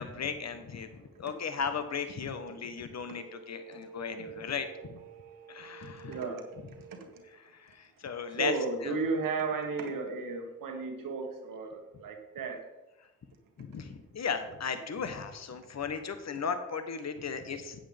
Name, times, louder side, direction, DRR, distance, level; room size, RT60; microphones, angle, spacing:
voice 1, 0.0-5.0 5.5-6.2 7.4-8.5 8.8-8.9 13.6-17.8, left 6 dB, 50° left, 9 dB, 1.1 m, -36 dB
voice 2, 2.9-7.3 8.4-12.6 13.7-13.8, right 4 dB, 75° right, 4 dB, 1.6 m, -36 dB
9.9 x 8.0 x 3.5 m, 1.0 s
supercardioid pair, 45°, 33 cm